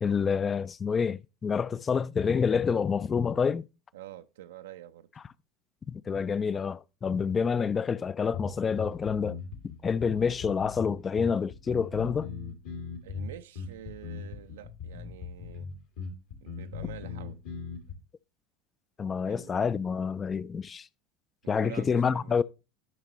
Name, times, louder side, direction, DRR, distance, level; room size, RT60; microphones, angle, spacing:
voice 1, 0.0-3.6 5.9-9.4 9.8-12.3 19.0-20.9 21.5-22.4, left 6 dB, 30° left, 0.3 m, -28 dB
voice 2, 3.9-5.1 13.0-15.7 16.4-17.4 19.2-19.6 21.4-22.4, right 11 dB, 75° right, 0.5 m, -46 dB
sound 1, 8.3-17.9, left 5 dB, 65° left, 1.7 m, -39 dB
11.0 x 5.7 x 3.0 m
hypercardioid pair, 80°, 0 cm